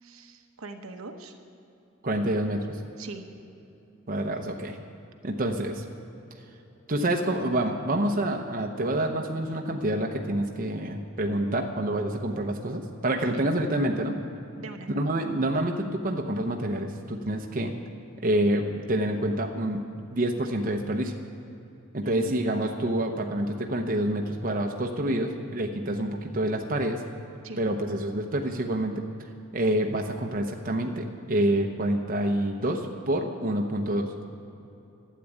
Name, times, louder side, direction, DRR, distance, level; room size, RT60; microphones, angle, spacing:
voice 1, 0.0-1.4 3.0-3.3 13.4-13.5 14.6-14.9 22.0-22.7 27.4-27.7, right 2 dB, 75° right, 5 dB, 1.0 m, -41 dB
voice 2, 2.0-2.8 4.1-4.8 5.2-5.8 6.9-14.2 14.9-17.7 18.2-19.8 20.1-21.1 21.9-27.0 27.6-29.0 29.5-34.1, right 1 dB, 40° right, 2 dB, 0.8 m, -27 dB
12.0 x 8.5 x 9.8 m, 2.9 s
head